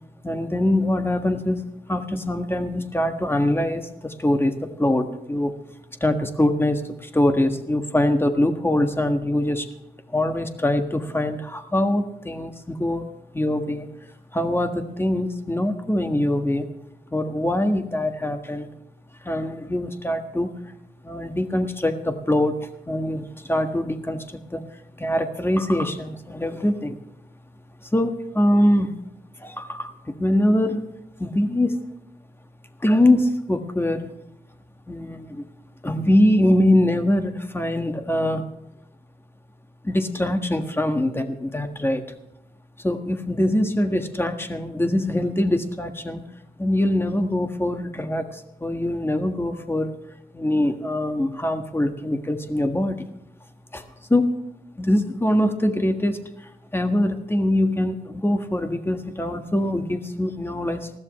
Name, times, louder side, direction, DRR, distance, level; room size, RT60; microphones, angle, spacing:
voice 1, 0.2-1.6 1.9-5.5 6.0-9.7 10.1-13.0 13.3-13.9 14.3-16.7 17.1-18.7 19.2-20.5 21.0-22.6 22.9-24.6 25.0-27.0 27.9-28.9 29.4-30.8 31.2-31.8 32.8-34.1 34.9-35.5 35.8-38.4 39.8-42.0 42.8-46.2 46.6-49.9 50.3-53.1 53.7-53.8 54.1-54.3 54.8-60.9, left 1 dB, 15° left, 6 dB, 1.6 m, -23 dB
20.5 x 14.0 x 3.2 m, 0.88 s
wide cardioid pair, 105°, 17 cm